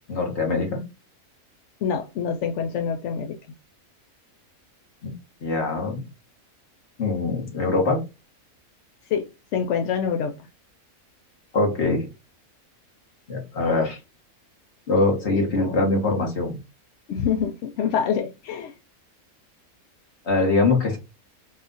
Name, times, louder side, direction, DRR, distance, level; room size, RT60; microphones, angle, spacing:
voice 1, 0.1-0.8 5.0-5.1 5.4-6.0 7.0-8.0 11.5-12.1 13.3-14.0 14.9-16.6 20.2-21.0, left 3 dB, 50° left, 1 dB, 1.6 m, -23 dB
voice 2, 1.8-3.4 9.1-10.5 17.1-18.7, left 7 dB, 65° left, 3 dB, 0.8 m, -26 dB
4.2 x 2.4 x 3.8 m, 0.26 s
omnidirectional pair, 1.5 m